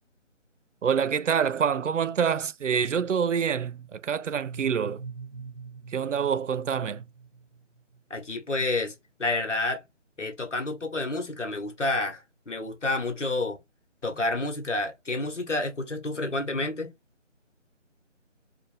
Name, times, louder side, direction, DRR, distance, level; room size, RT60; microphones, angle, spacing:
voice 1, 0.8-5.0 5.9-7.1, right 7 dB, 75° right, 0.5 m, -26 dB
sound 1, 4.3-8.0, right 5 dB, 45° right, 0.9 m, -43 dB
voice 2, 8.1-8.9 9.2-9.8 10.2-13.6 14.0-16.9, left 2 dB, 70° left, 1.7 m, -29 dB
4.4 x 2.6 x 3.5 m
figure-of-eight pair, 160°, 37 cm